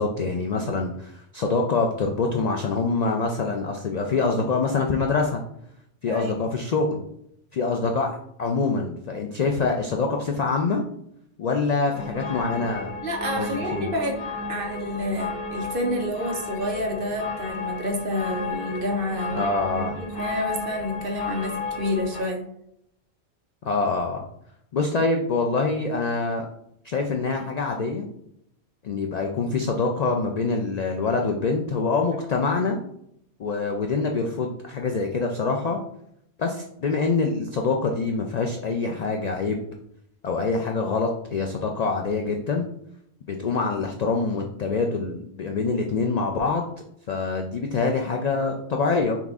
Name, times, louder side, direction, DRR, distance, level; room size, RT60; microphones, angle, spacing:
voice 1, 0.0-5.4 6.0-7.0 7.5-10.8 11.4-12.9 13.4-13.9 19.3-20.0 23.6-24.2 24.7-26.5 26.8-28.1 28.8-32.8 33.4-35.8 36.4-39.6 40.2-42.7 43.3-46.7 47.1-49.2, left 4 dB, 80° left, 2 dB, 0.3 m, -25 dB
sound 1, 11.9-22.2, left 3 dB, 55° left, 1.2 m, -33 dB
voice 2, 13.0-19.5 19.9-22.4, left 1 dB, 55° right, 3 dB, 0.8 m, -29 dB
5.7 x 2.4 x 3.5 m, 0.75 s
omnidirectional pair, 1.2 m